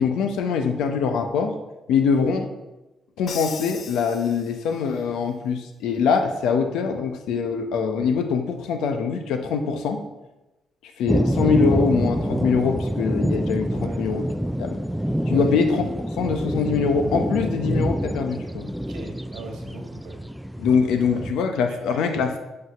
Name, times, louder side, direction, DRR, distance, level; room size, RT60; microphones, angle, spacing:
voice 1, 0.0-1.5 1.9-2.5 3.2-10.0 11.0-14.3 14.6-14.8 15.3-15.8 16.2-18.7 20.6-22.4, left 5 dB, 90° left, 5 dB, 0.9 m, -23 dB
Crash cymbal, 3.3-5.0, left 7 dB, 60° left, 0.5 m, -38 dB
sound 1, 11.1-21.3, equal, ahead, 0.3 m, -26 dB
voice 2, 18.9-20.2 21.0-21.2 21.7-22.0, right 3 dB, 75° right, 2 dB, 1.6 m, -39 dB
6.2 x 5.4 x 5.8 m, 1.0 s
cardioid pair, 90°, 0 cm